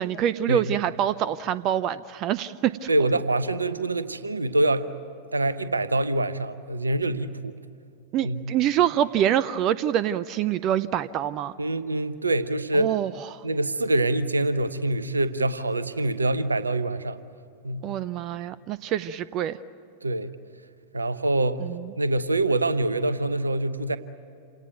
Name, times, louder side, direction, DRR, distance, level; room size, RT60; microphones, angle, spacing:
voice 1, 0.0-2.9 8.1-11.5 12.7-13.4 17.8-19.6 21.6-21.9, right 10 dB, 35° right, 17 dB, 0.5 m, -25 dB
voice 2, 2.9-4.9 5.3-7.5 8.2-8.4 11.6-12.9 13.4-17.2 17.6-17.9 20.0-20.3 20.9-21.6 22.0-24.0, right 2 dB, 80° right, 14 dB, 0.9 m, -25 dB
28.0 x 18.0 x 9.4 m, 2.4 s
figure-of-eight pair, 90°, 0 cm